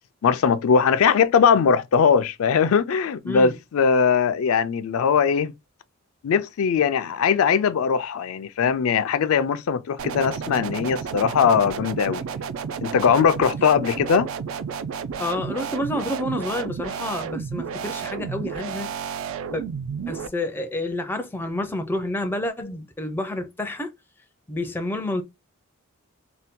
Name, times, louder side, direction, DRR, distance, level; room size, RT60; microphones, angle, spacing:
voice 1, 0.2-5.5 6.2-12.2 12.8-14.3, left 6 dB, 75° left, 0.4 m, -20 dB
voice 2, 3.3-3.6 15.2-18.9 19.5-19.6 20.1-23.9 24.5-25.2, left 1 dB, 10° left, 0.4 m, -29 dB
sound 1, 10.0-20.3, right 6 dB, 65° right, 0.3 m, -31 dB
2.7 x 2.2 x 3.6 m
head